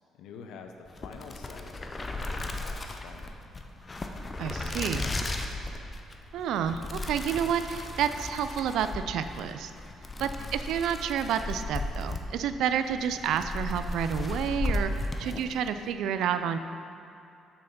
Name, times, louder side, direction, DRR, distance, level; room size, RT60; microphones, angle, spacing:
voice 1, 0.1-1.8 2.1-3.3 10.2-10.6, left 6 dB, 80° left, 5 dB, 0.6 m, -47 dB
sound 1, 0.9-15.8, left 2 dB, 20° left, 0.5 m, -35 dB
voice 2, 4.4-5.1 6.3-9.7 10.2-16.6, right 8 dB, 70° right, 10 dB, 0.3 m, -30 dB
6.9 x 5.6 x 5.4 m, 2.7 s
cardioid pair, 170°, 0 cm